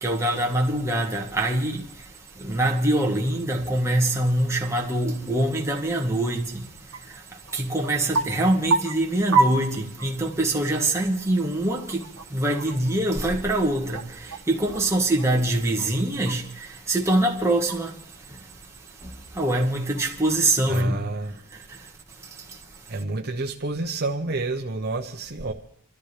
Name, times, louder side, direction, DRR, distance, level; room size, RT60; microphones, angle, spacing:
voice 1, 0.0-1.8 2.4-6.7 7.5-12.0 12.3-17.9 19.0-19.1 19.3-21.0, right 1 dB, 15° right, 1.5 m, -24 dB
sound 1, 6.9-7.0 7.3-10.3 10.8-10.9 11.2-14.8 15.1-16.8 17.2-18.1 18.6-21.0 21.4-21.5 22.5-22.8, right 3 dB, 65° right, 1.3 m, -30 dB
voice 2, 20.7-21.3 22.9-25.5, right 2 dB, 45° right, 0.9 m, -29 dB
28.0 x 13.0 x 3.4 m
head